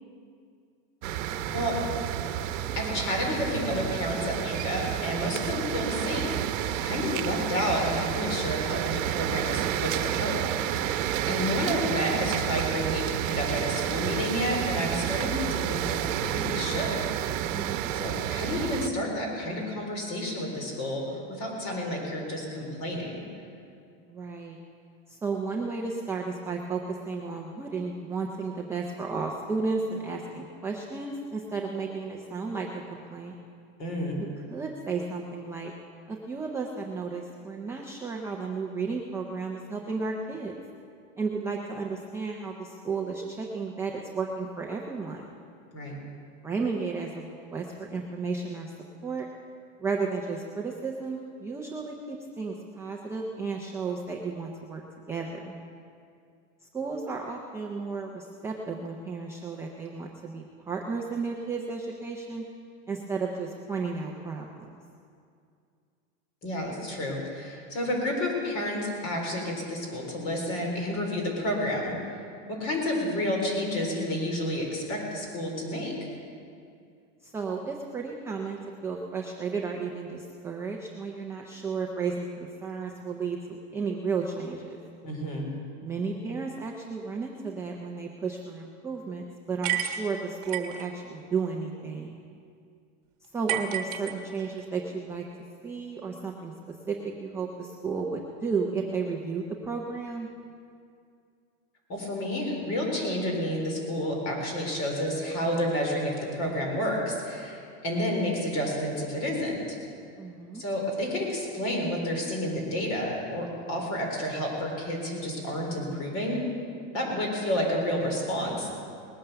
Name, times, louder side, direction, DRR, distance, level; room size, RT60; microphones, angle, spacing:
sound 1, 1.0-18.9, right 11 dB, 70° right, 0.9 m, -30 dB
voice 1, 2.8-10.9 11.3-17.0 17.9-23.2 33.8-34.2 45.7-46.0 66.4-72.0 72.5-76.1 85.0-85.5 101.9-109.6 110.5-116.4 116.9-118.7, left 1 dB, 40° left, 0 dB, 4.0 m, -30 dB
voice 2, 17.5-17.9 24.1-24.6 25.1-33.3 34.2-35.7 36.1-40.5 41.2-45.3 46.4-48.7 49.0-49.3 49.8-54.8 55.1-55.5 56.7-62.5 62.9-64.7 77.2-84.8 85.8-92.2 93.2-95.3 95.6-100.3 110.2-110.6, right 4 dB, 5° right, -1 dB, 0.4 m, -33 dB
sound 2, 89.6-90.9 93.5-94.6, right 11 dB, 45° right, 1.2 m, -31 dB
19.5 x 8.9 x 6.8 m, 2.4 s
supercardioid pair, 160°, 40 cm